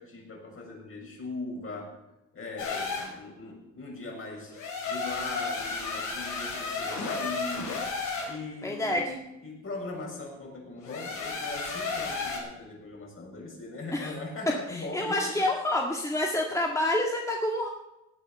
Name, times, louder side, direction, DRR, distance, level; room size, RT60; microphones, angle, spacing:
voice 1, 0.0-2.0 2.3-4.5 4.9-7.7 8.3-15.5, left 2 dB, 45° left, -1 dB, 6.9 m, -40 dB
sound 1, 2.6-3.1 4.5-8.3 10.8-12.4, left 4 dB, 80° left, 5.9 m, -33 dB
voice 2, 8.6-9.1 13.9-14.1 14.7-17.7, left 1 dB, 10° left, 0 dB, 2.0 m, -28 dB
18.0 x 9.2 x 6.9 m, 0.92 s
cardioid pair, 90°, 30 cm